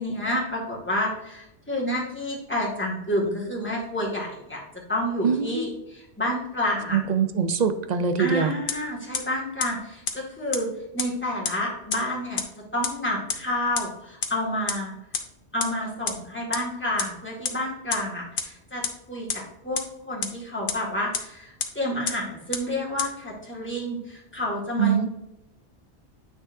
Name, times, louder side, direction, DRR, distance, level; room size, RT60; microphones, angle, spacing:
voice 1, 0.0-4.6 4.9-7.1 8.2-10.7 10.9-12.4 12.7-14.9 15.5-18.8 19.1-19.8 20.1-25.0, left 1 dB, 10° left, -4 dB, 1.9 m, -29 dB
voice 2, 5.2-5.7 6.9-8.5 24.8-25.1, right 7 dB, 50° right, 9 dB, 0.6 m, -23 dB
sound 1, 8.7-8.8 9.1-9.2 9.6-9.7 10.1-10.2 10.5-10.6 11.0-11.1 11.4-11.5 11.9-12.0 12.4-12.5 12.8-12.9 13.3-13.4 13.8-13.9 14.2-14.3 14.7-14.8 15.1-15.2 15.6-15.7 16.1-16.2 16.5-16.6 17.0-17.1 17.4-17.5 17.9-18.0 18.4-18.5 18.8-18.9 19.3-19.4 19.8-19.9 20.2-20.3 20.7-20.8 21.1-21.2 21.6-21.7 22.1-22.2 22.5-22.6 23.0-23.1, left 6 dB, 55° left, 0.9 m, -26 dB
8.9 x 6.1 x 2.6 m, 0.88 s
omnidirectional pair, 1.2 m